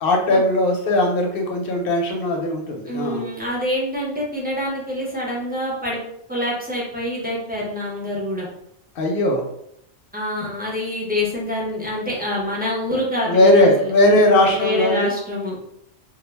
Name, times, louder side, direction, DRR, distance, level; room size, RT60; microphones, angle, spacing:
voice 1, 0.0-3.3 9.0-9.4 13.3-15.1, left 1 dB, 65° left, 1 dB, 0.7 m, -18 dB
voice 2, 2.9-6.0 6.3-8.5 10.1-15.5, left 1 dB, 15° right, -4 dB, 0.4 m, -26 dB
2.3 x 2.0 x 3.2 m, 0.75 s
omnidirectional pair, 1.1 m